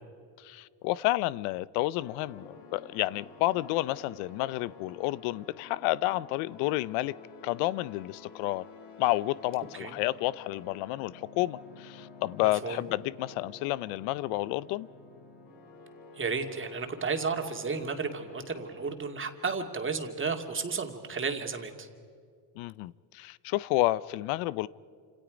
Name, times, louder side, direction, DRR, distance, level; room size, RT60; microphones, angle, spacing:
voice 1, 0.4-7.1 7.4-8.6 9.0-14.9 22.6-24.7, left 17 dB, 90° left, 0.7 m, -30 dB
sound 1, 2.0-18.9, left 4 dB, 70° left, 6.4 m, -51 dB
voice 2, 12.4-12.8 16.1-21.9, right 5 dB, 25° right, 2.4 m, -33 dB
29.0 x 27.0 x 5.1 m
cardioid pair, 120°, 48 cm